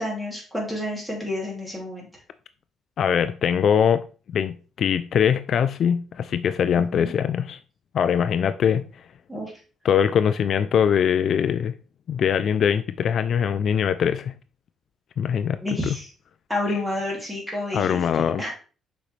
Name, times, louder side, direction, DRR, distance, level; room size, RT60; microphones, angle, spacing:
voice 1, 0.0-2.1 6.7-7.1 9.3-9.5 15.6-16.1 16.5-18.5, left 1 dB, 5° right, 2.6 m, -30 dB
voice 2, 3.0-4.0 4.3-7.6 7.9-9.0 9.8-11.7 12.1-14.3 15.2-15.6 16.7-16.8 17.7-18.5, left 8 dB, 50° left, 0.3 m, -22 dB
6.9 x 5.2 x 3.2 m
cardioid pair, 145°, 0 cm